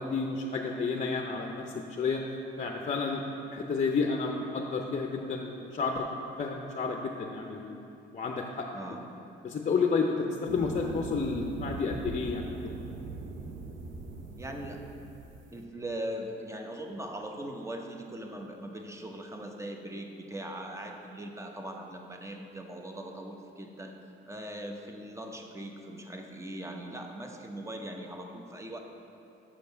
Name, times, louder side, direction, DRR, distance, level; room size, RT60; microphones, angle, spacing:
voice 1, 0.0-2.2 2.6-3.2 3.5-7.7 8.1-8.7 9.4-12.8, left 4 dB, 35° left, 2 dB, 0.6 m, -31 dB
sound 1, 10.5-15.5, right 3 dB, 75° right, 0.7 m, -40 dB
voice 2, 14.4-14.8 15.5-24.0 24.3-28.8, right 1 dB, 15° right, 3 dB, 0.8 m, -40 dB
7.0 x 5.2 x 5.5 m, 2.9 s
cardioid pair, 90°, 20 cm